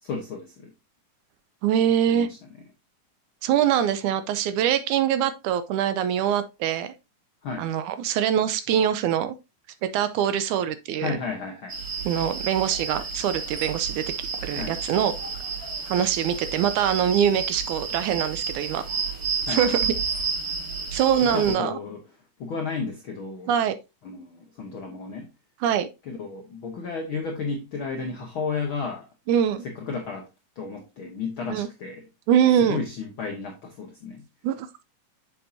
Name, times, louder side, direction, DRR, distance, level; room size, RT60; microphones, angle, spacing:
voice 1, 0.0-0.7 2.1-2.4 7.4-7.7 11.0-11.8 14.5-14.8 19.4-19.7 21.2-22.0 22.4-23.5 24.0-25.3 26.0-29.1 29.6-30.3 30.6-32.1 32.6-34.2, left 4 dB, 70° left, 1.2 m, -33 dB
voice 2, 1.6-2.3 3.4-6.9 7.6-9.4 9.8-11.2 12.1-15.1 15.9-18.8 19.5-19.9 20.9-21.7 23.5-23.8 25.6-25.9 29.3-29.7 31.5-31.7 32.3-32.8 34.4-34.8, right 9 dB, 80° right, 1.9 m, -23 dB
sound 1, 11.7-21.6, right 5 dB, 30° right, 2.1 m, -31 dB
7.0 x 7.0 x 2.6 m
omnidirectional pair, 3.8 m